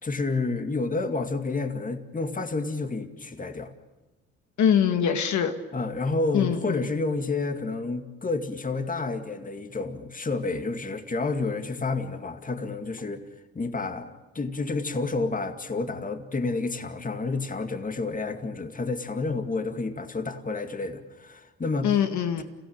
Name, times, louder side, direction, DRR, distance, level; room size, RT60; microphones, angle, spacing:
voice 1, 0.0-3.7 5.7-13.2 13.5-21.9, left 3 dB, 25° left, 8 dB, 2.2 m, -30 dB
voice 2, 4.6-5.5 6.3-6.8 21.8-22.4, left 8 dB, 70° left, 7 dB, 1.8 m, -23 dB
29.0 x 16.0 x 8.9 m, 1.1 s
cardioid pair, 90°, 30 cm